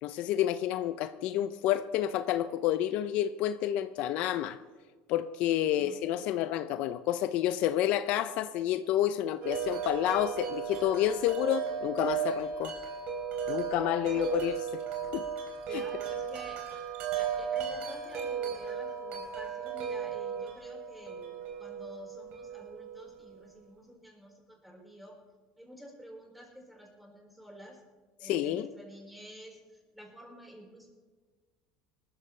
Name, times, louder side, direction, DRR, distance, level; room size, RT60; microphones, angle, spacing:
voice 1, 0.0-4.6 5.1-12.7 13.5-14.8 15.1-15.2 15.7-15.8 28.2-28.7, left 12 dB, 60° left, 12 dB, 0.5 m, -29 dB
voice 2, 5.7-6.0 13.5-13.6 14.0-14.3 15.7-16.6 17.2-25.2 25.6-27.8 28.2-30.9, equal, ahead, -1 dB, 4.6 m, -50 dB
Wind chime, 9.4-23.4, right 7 dB, 60° right, 3.8 m, -36 dB
19.5 x 14.0 x 3.3 m, 1.4 s
supercardioid pair, 120°, 3 cm